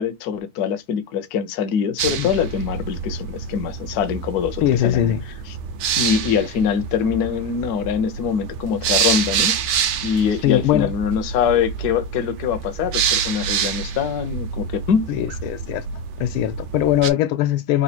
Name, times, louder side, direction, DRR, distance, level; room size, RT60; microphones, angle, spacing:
voice 1, 0.0-5.1 5.5-5.6 6.0-9.6 10.0-15.1, left 7 dB, 60° left, 1.1 m, -23 dB
sound 1, 2.0-17.1, right 7 dB, 70° right, 1.1 m, -27 dB
voice 2, 4.6-5.2 10.4-10.9 15.1-15.9 16.2-17.8, left 12 dB, 90° left, 1.4 m, -20 dB
4.1 x 2.2 x 4.2 m
omnidirectional pair, 2.2 m